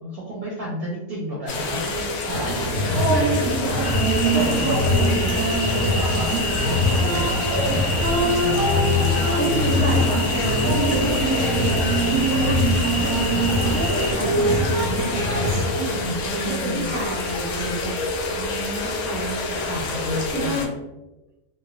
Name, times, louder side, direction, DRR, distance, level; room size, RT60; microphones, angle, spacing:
voice 1, 0.0-3.6 4.2-5.2 5.6-10.1 16.2-16.9 18.4-20.7, equal, 60° right, -5 dB, 0.7 m, -32 dB
sound 1, 1.5-20.7, left 3 dB, 90° left, 1.0 m, -28 dB
voice 2, 1.9-2.4 3.0-5.3 9.3-12.1 12.4-17.9 20.3-20.7, right 1 dB, 10° left, -7 dB, 0.7 m, -30 dB
sound 2, 2.3-15.7, equal, 85° right, 1.1 m, -22 dB
sound 3, 3.8-14.1, left 1 dB, 60° left, 1.0 m, -30 dB
3.2 x 2.2 x 2.3 m, 1.0 s
omnidirectional pair, 1.5 m